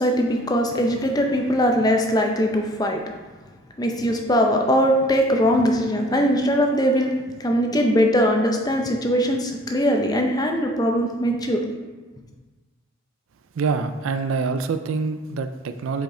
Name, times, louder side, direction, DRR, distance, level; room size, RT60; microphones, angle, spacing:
voice 1, 0.0-3.0 3.8-7.1 7.4-11.7, equal, 20° left, 2 dB, 0.5 m, -21 dB
voice 2, 13.5-16.0, right 4 dB, 65° right, 9 dB, 0.4 m, -25 dB
5.1 x 5.0 x 3.8 m, 1.3 s
head